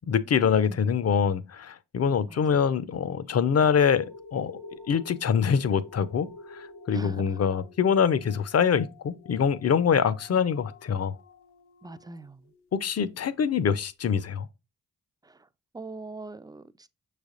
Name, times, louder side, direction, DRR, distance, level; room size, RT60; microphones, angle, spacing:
voice 1, 0.1-4.5 4.9-11.2 12.8-14.5, left 7 dB, 40° left, 0.6 m, -24 dB
sound 1, 3.8-12.7 13.3-13.4, left 3 dB, 80° left, 0.9 m, -49 dB
voice 2, 6.9-7.2 11.8-12.4 15.2-15.5 15.7-16.9, right 3 dB, 10° right, 0.4 m, -41 dB
6.2 x 3.3 x 2.5 m
supercardioid pair, 40°, 39 cm